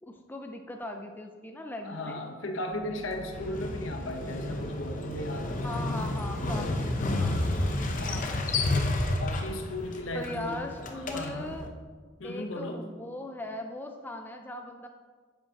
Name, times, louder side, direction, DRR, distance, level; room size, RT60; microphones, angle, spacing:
voice 1, 0.0-2.2 5.6-8.7 10.1-11.7 12.2-14.9, left 1 dB, 10° left, 3 dB, 0.4 m, -39 dB
voice 2, 1.8-5.8 8.0-8.3 9.2-10.6 11.1-11.5 12.2-12.8, left 1 dB, 65° left, 4 dB, 0.9 m, -36 dB
sound 1, 2.7-7.7, equal, 85° right, 2.2 m, -44 dB
Motorcycle, 3.3-11.7, left 2 dB, 40° left, 0.7 m, -31 dB
9.5 x 7.6 x 2.9 m, 1.6 s
head